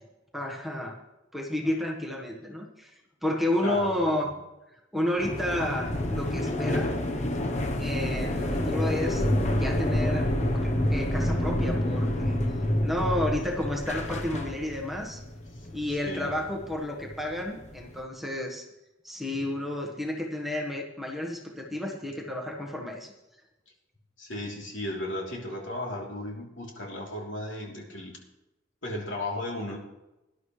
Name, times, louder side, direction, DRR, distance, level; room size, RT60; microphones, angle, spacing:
voice 1, 0.3-0.9 1.3-2.9 3.2-4.3 4.9-6.9 7.6-9.3 9.5-12.4 12.8-15.2 15.7-18.6 19.0-23.1, left 1 dB, ahead, 0 dB, 1.4 m, -31 dB
voice 2, 3.6-4.3 15.5-16.3 24.2-28.2 28.8-29.8, left 1 dB, 70° left, -2 dB, 3.3 m, -35 dB
sound 1, 5.2-18.0, left 1 dB, 35° left, 1.0 m, -28 dB
18.5 x 11.0 x 3.3 m, 0.96 s
head